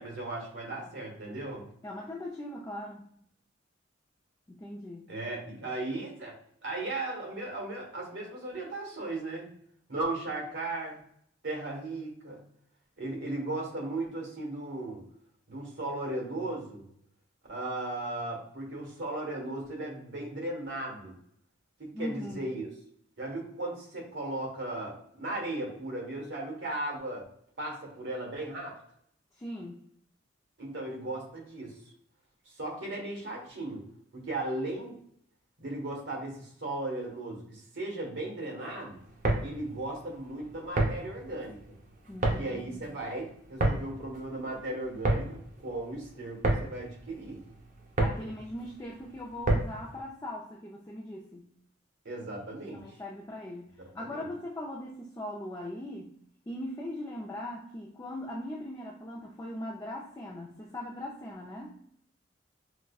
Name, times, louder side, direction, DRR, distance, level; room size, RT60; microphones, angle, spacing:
voice 1, 0.0-1.7 5.1-6.3 6.6-9.5 9.9-11.0 11.4-12.4 13.0-15.0 15.5-16.8 17.5-21.2 21.8-22.7 23.2-27.2 27.6-28.7 30.6-31.8 32.4-33.8 34.1-35.0 35.6-39.0 39.4-41.6 42.4-47.4 52.0-53.0 53.8-54.3, right 2 dB, 70° right, -1 dB, 1.2 m, -36 dB
voice 2, 1.8-3.1 4.5-5.1 5.6-5.7 21.9-22.5 29.3-29.8 42.1-42.9 48.0-51.5 52.7-56.1 56.5-61.8, left 1 dB, 15° left, -2 dB, 0.4 m, -40 dB
sound 1, 39.0-49.9, right 2 dB, 40° right, 0.6 m, -31 dB
4.7 x 2.1 x 2.3 m, 0.68 s
head